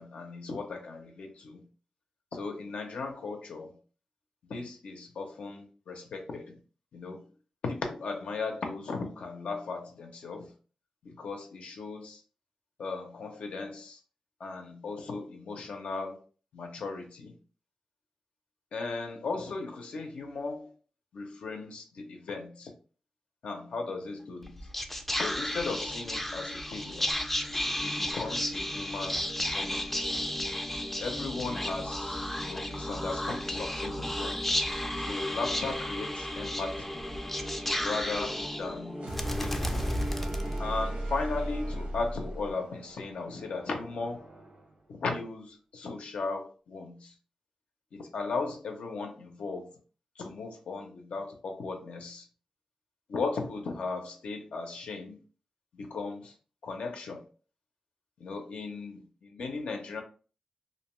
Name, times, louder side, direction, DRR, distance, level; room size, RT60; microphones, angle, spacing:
voice 1, 0.0-1.6 2.3-3.8 4.5-6.6 6.9-7.3 7.6-10.5 11.0-12.2 12.8-14.0 14.4-16.2 16.5-17.4 18.7-20.7 21.1-22.7 23.4-24.6 25.2-27.1 27.8-29.2 29.5-30.0 31.0-34.4 34.9-37.1 37.8-39.1 39.4-39.9 40.6-44.3 44.9-47.1 47.9-49.7 50.2-52.3 53.1-55.2 55.7-56.3 56.6-57.3 58.2-60.0, left 3 dB, 90° left, 0.5 m, -37 dB
Whispering, 24.4-41.0, left 1 dB, 10° left, 0.3 m, -33 dB
sound 1, 38.9-44.8, right 1 dB, 75° right, 0.8 m, -37 dB
2.5 x 2.1 x 3.0 m
wide cardioid pair, 95°, 2 cm